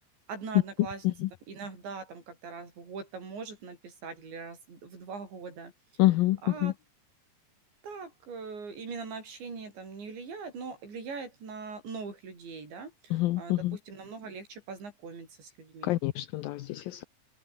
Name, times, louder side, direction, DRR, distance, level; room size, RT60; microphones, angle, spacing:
voice 1, 0.3-1.0 1.5-6.0 6.4-6.7 7.8-16.0, right 4 dB, 90° right, 10.0 m, -41 dB
voice 2, 6.0-6.7 13.1-13.8 15.8-17.0, left 17 dB, 75° left, 2.2 m, -27 dB
omnidirectional pair, 5.0 m